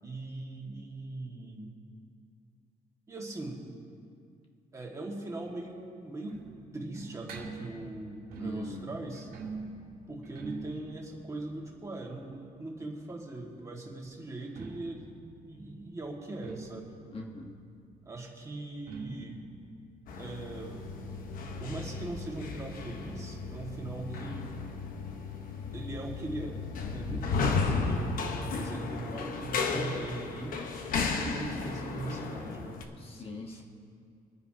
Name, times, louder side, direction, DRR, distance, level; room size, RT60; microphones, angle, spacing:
voice 1, 0.0-1.8 3.1-3.6 4.7-6.4 6.7-9.3 10.1-16.9 18.0-19.5 20.2-20.8 21.6-24.6 25.7-26.6 26.9-30.6 31.0-32.8 33.5-33.6, right 2 dB, 20° right, -1 dB, 2.0 m, -40 dB
sound 1, 5.5-13.2 14.3-21.7 21.9-22.0 22.3-22.4 23.0-23.1, right 3 dB, 90° right, 1.9 m, -45 dB
voice 2, 8.4-8.9 17.1-17.6 27.1-27.2 33.0-33.6, left 3 dB, 40° left, 1 dB, 1.4 m, -42 dB
sound 2, 20.1-32.8, left 4 dB, 65° left, 1.2 m, -34 dB
26.5 x 9.7 x 2.9 m, 2.3 s
cardioid pair, 140°, 15 cm